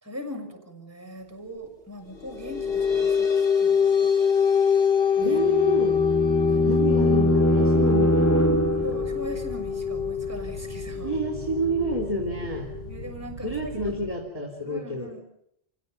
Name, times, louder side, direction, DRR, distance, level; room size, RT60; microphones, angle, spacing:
voice 1, 0.0-4.1 5.2-5.6 6.5-6.8 8.8-11.1 12.9-13.9 14.6-15.2, equal, 15° right, 5 dB, 6.3 m, -40 dB
sound 1, 2.1-13.1, left 7 dB, 65° left, 2.5 m, -25 dB
voice 2, 5.2-6.0 6.6-8.9 11.0-12.7 13.4-15.1, right 2 dB, 35° right, 2 dB, 3.1 m, -29 dB
sound 2, 5.3-9.2, equal, 15° left, 0.9 m, -23 dB
sound 3, 8.3-14.1, equal, 45° left, 7.3 m, -40 dB
28.0 x 16.5 x 9.5 m, 0.75 s
omnidirectional pair, 1.1 m